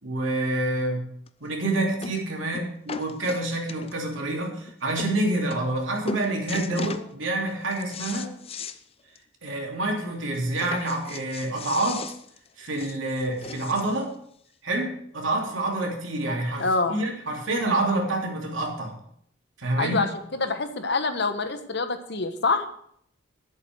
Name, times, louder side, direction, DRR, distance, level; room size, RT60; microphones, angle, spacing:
voice 1, 0.0-1.0 1.4-8.3 9.4-12.1 12.6-14.1 14.6-18.9 19.6-20.0, right 2 dB, 85° right, 0 dB, 3.1 m, -27 dB
sound 1, 1.3-1.4 2.0-2.3 2.5-4.1 4.7-4.8 5.0-5.1 5.5-5.8 6.1-7.1 7.5-8.8 9.2-9.3 9.6-9.7 10.6-14.0 14.8-14.9, left 4 dB, 30° left, 0.5 m, -37 dB
voice 2, 16.6-17.0 19.8-22.7, left 3 dB, 60° left, 8 dB, 1.2 m, -26 dB
11.0 x 8.1 x 6.3 m, 0.67 s
head